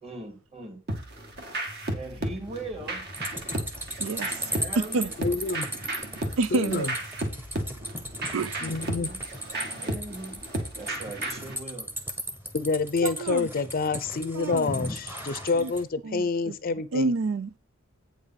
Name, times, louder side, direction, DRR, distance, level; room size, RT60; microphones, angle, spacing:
voice 1, 0.0-0.8 1.6-3.0 4.6-5.4 8.6-9.2 9.8-10.4 10.8-11.9, right 2 dB, 30° right, 2.5 m, -40 dB
sound 1, 0.9-11.6, right 1 dB, 50° right, 1.8 m, -34 dB
sound 2, 3.1-15.8, equal, 10° right, 1.1 m, -37 dB
voice 2, 4.0-4.5 4.8-5.1 6.4-6.9 8.3-8.7 13.0-13.5 14.3-14.7 15.5-15.7 16.0-16.5 16.9-17.6, right 3 dB, 80° right, 0.4 m, -28 dB
voice 3, 5.2-5.7 6.5-6.9 8.6-9.1 12.5-17.1, left 4 dB, 45° left, 0.5 m, -28 dB
8.5 x 4.8 x 5.7 m
head